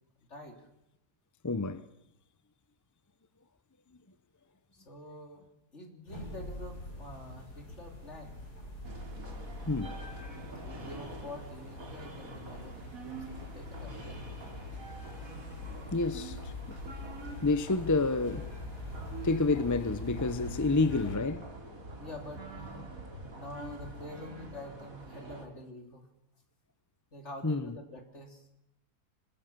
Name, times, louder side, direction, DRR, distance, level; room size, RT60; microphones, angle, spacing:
voice 1, 0.3-0.6 4.7-5.5 5.7-8.4 10.6-12.8 13.0-14.2 22.0-22.9 23.3-26.1 27.1-28.5, left 1 dB, 45° left, 3.4 m, -47 dB
voice 2, 1.4-1.9 3.9-4.0 9.7-10.0 15.9-16.8 17.4-18.5 19.2-21.5 27.4-27.8, left 3 dB, 30° left, 0.3 m, -29 dB
sound 1, 6.1-21.2, left 3 dB, 70° left, 8.6 m, -44 dB
sound 2, 8.8-25.4, right 2 dB, 55° right, 3.4 m, -45 dB
26.0 x 21.0 x 6.9 m
omnidirectional pair, 1.7 m